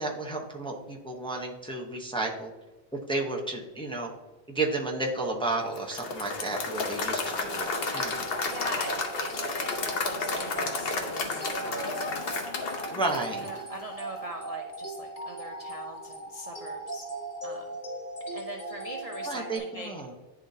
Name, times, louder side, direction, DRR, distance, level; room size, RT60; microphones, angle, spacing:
voice 1, 0.0-2.5 3.1-4.1 4.5-8.2 12.9-13.4 19.3-20.1, right 2 dB, 5° left, 0 dB, 0.6 m, -32 dB
Applause / Crowd, 5.8-13.9, left 4 dB, 60° left, 1.0 m, -32 dB
sound 1, 7.5-19.6, right 2 dB, 35° left, 1.2 m, -39 dB
voice 2, 8.4-12.1 13.4-17.1 17.4-17.8 18.3-20.0, right 1 dB, 45° right, 2 dB, 0.5 m, -42 dB
10.5 x 3.8 x 2.7 m, 1.1 s
omnidirectional pair, 1.2 m